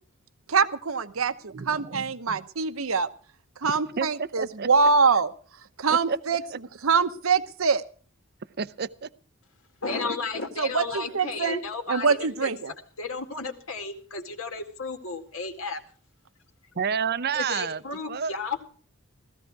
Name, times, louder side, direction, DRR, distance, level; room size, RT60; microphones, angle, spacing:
voice 1, 0.5-3.1 3.6-5.3 5.8-6.4 6.8-7.8 10.6-11.6 11.9-12.7, right 5 dB, 75° right, 11 dB, 0.9 m, -24 dB
voice 2, 1.5-2.4 3.6-4.7 5.9-6.2 6.5-6.6 8.6-9.1 16.8-17.8 18.1-18.3, right 6 dB, 50° right, 16 dB, 0.6 m, -30 dB
voice 3, 9.8-12.5 13.0-15.8 17.3-18.7, left 4 dB, 70° left, 5 dB, 2.1 m, -33 dB
16.0 x 14.5 x 4.7 m, 0.42 s
head